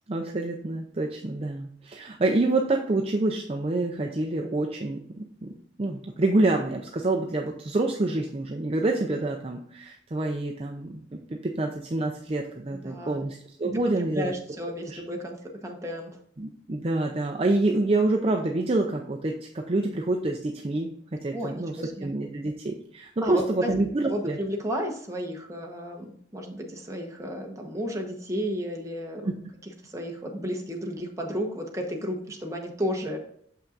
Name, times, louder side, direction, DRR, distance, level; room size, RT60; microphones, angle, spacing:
voice 1, 0.1-5.5 5.8-14.3 14.9-15.0 16.4-24.4 29.2-29.3, right 2 dB, 35° right, 2 dB, 0.5 m, -27 dB
voice 2, 12.7-13.2 13.6-15.4 15.6-16.1 21.3-22.1 23.2-23.7 24.0-29.3 29.9-33.2, equal, 20° right, 1 dB, 1.1 m, -33 dB
7.0 x 5.6 x 2.5 m, 0.66 s
head